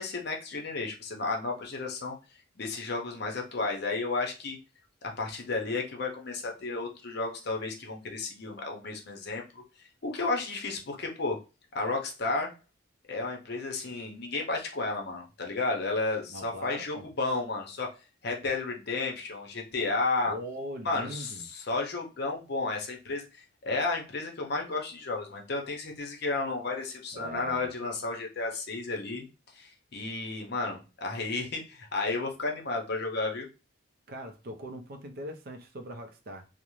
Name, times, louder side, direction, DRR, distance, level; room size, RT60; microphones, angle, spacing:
voice 1, 0.0-2.2 2.6-4.6 5.2-11.4 11.7-12.5 13.1-17.9 18.2-20.3 20.8-29.3 29.5-33.5, left 3 dB, 55° left, 0.6 m, -32 dB
voice 2, 16.3-17.1 20.3-21.5 27.1-27.7 34.1-36.5, equal, 50° right, 0.4 m, -41 dB
2.5 x 2.0 x 3.0 m
head